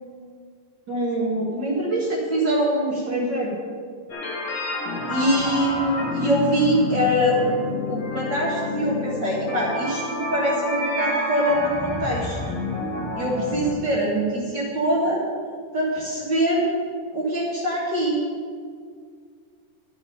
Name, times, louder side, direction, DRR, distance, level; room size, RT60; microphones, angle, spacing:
voice 1, 0.9-3.5 5.1-7.5 7.9-12.4 13.1-15.2 15.7-16.7 17.1-18.2, right 1 dB, 45° right, -5 dB, 1.5 m, -23 dB
sound 1, 4.1-13.7, left 2 dB, 45° left, 1.8 m, -29 dB
11.0 x 7.1 x 5.6 m, 2.1 s
omnidirectional pair, 3.8 m